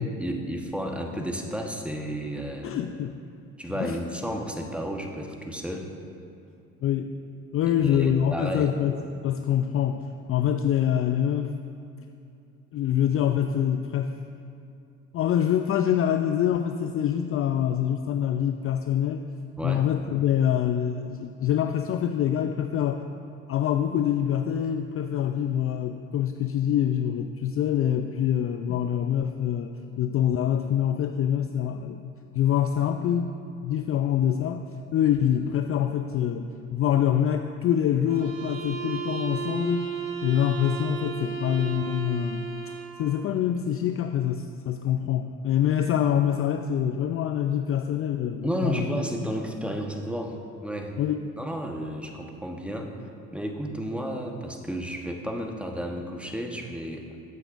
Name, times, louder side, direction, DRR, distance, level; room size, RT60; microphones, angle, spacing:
voice 1, 0.0-2.8 3.6-5.9 7.6-8.7 19.6-19.8 48.4-50.4 50.6-50.9 51.4-52.9 53.3-57.0, equal, 5° right, 2 dB, 1.1 m, -32 dB
voice 2, 2.6-3.2 3.8-4.0 6.8-7.1 7.5-9.0 9.2-11.5 12.7-14.1 15.1-19.2 19.6-23.0 23.5-32.0 32.3-33.3 33.6-34.6 34.9-39.9 40.2-48.9 51.0-51.3, left 9 dB, 40° left, 7 dB, 0.4 m, -25 dB
sound 1, 38.1-43.0, right 7 dB, 70° right, 1.1 m, -34 dB
14.5 x 7.9 x 2.5 m, 2.6 s
hypercardioid pair, 60°, 37 cm